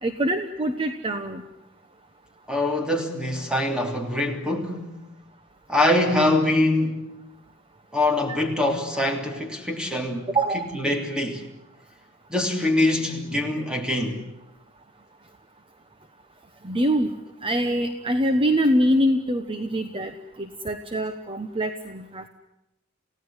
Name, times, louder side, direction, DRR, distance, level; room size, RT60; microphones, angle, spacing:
voice 1, 0.0-1.4 10.3-10.7 16.6-17.1 17.4-22.3, equal, 25° right, 1.1 m, -24 dB
voice 2, 2.5-4.9 5.7-7.1 7.9-10.3 10.8-11.4 12.3-14.2, left 1 dB, 5° right, 3.1 m, -23 dB
29.0 x 17.0 x 9.8 m
head